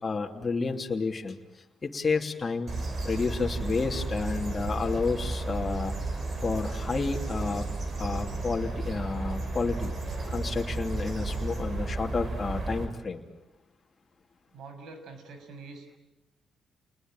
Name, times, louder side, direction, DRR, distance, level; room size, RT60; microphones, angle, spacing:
voice 1, 0.0-1.4 1.8-2.7 3.0-5.9 6.4-7.6 8.0-9.9 10.3-13.2, left 4 dB, 30° left, 1 dB, 2.9 m, -30 dB
sound 1, 2.7-12.9, right 3 dB, 45° right, 6.2 m, -33 dB
voice 2, 14.5-16.0, right 3 dB, 75° right, 7 dB, 6.6 m, -46 dB
29.5 x 20.5 x 9.1 m, 1.0 s
cardioid pair, 90°, 0 cm